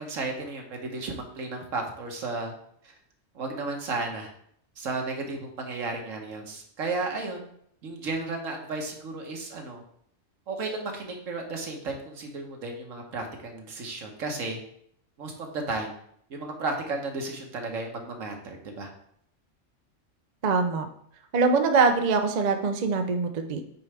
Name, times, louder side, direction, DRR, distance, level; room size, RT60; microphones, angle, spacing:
voice 1, 0.0-2.5 2.8-2.9 3.3-4.3 4.8-7.5 7.8-9.8 10.5-14.6 15.2-15.9 16.3-18.9, right 3 dB, 75° right, 2 dB, 1.5 m, -33 dB
voice 2, 20.4-20.9 21.3-23.6, right 4 dB, 45° right, 6 dB, 0.6 m, -23 dB
8.6 x 4.7 x 3.3 m, 0.68 s
omnidirectional pair, 1.4 m